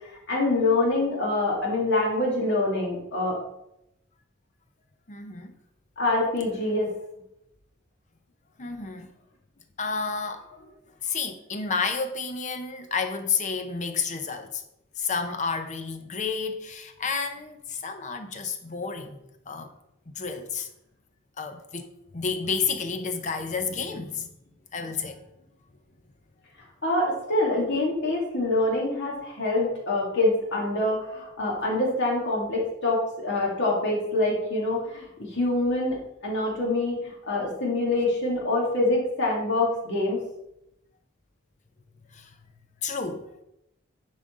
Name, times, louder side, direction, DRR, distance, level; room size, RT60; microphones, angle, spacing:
voice 1, 0.3-3.4 6.0-6.9 26.8-36.0 36.2-40.2, left 2 dB, 55° left, 2.2 m, -25 dB
voice 2, 5.1-5.5 8.6-9.1 9.8-10.5 11.0-14.6 15.0-19.2 19.5-19.7 20.1-20.7 21.4-24.3 24.7-25.2 42.1-42.3 42.8-43.3, left 5 dB, 35° left, 0.7 m, -30 dB
9.7 x 3.9 x 3.8 m
head